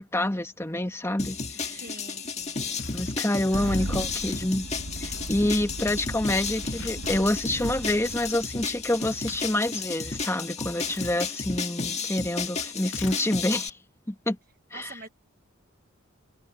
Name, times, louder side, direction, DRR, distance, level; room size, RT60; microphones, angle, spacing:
voice 1, 0.0-1.8 2.9-4.7 5.0-13.8 14.1-14.4 14.7-14.9, left 1 dB, 15° left, 1.6 m, -27 dB
sound 1, 1.2-13.7, left 4 dB, 35° left, 1.8 m, -33 dB
voice 2, 1.7-2.6 3.5-4.0 5.3-5.5 14.7-15.1, right 4 dB, 45° right, 1.2 m, -46 dB
Tearing, 2.4-3.2 4.0-4.5 4.7-8.4 8.8-10.3 10.8-11.2 12.8-13.5, left 7 dB, 65° left, 2.5 m, -46 dB
Engine starting, 3.5-9.1, right 1 dB, 85° right, 1.5 m, -37 dB
head